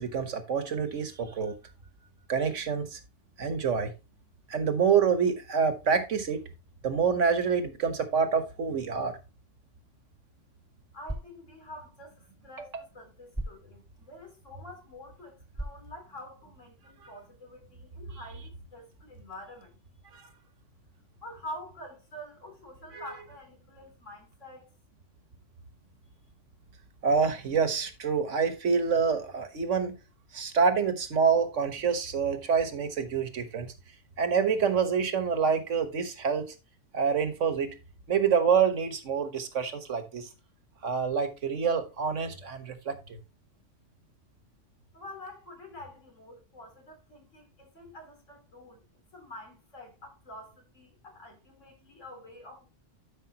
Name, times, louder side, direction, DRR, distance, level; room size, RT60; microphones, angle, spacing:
voice 1, 0.0-1.6 2.3-3.0 3.4-3.9 4.5-6.4 6.8-9.2 12.6-12.7 20.1-20.2 22.9-23.0 27.0-29.9 30.3-33.7 34.2-36.5 36.9-37.7 38.1-40.3 40.8-43.2, right 6 dB, 75° right, 1.5 m, -27 dB
sound 1, 9.8-16.7, right 1 dB, 5° right, 1.6 m, -44 dB
voice 2, 10.9-19.8 21.2-24.7 44.9-48.8 49.1-52.7, left 1 dB, 80° left, 3.5 m, -47 dB
12.0 x 5.4 x 2.8 m
omnidirectional pair, 1.3 m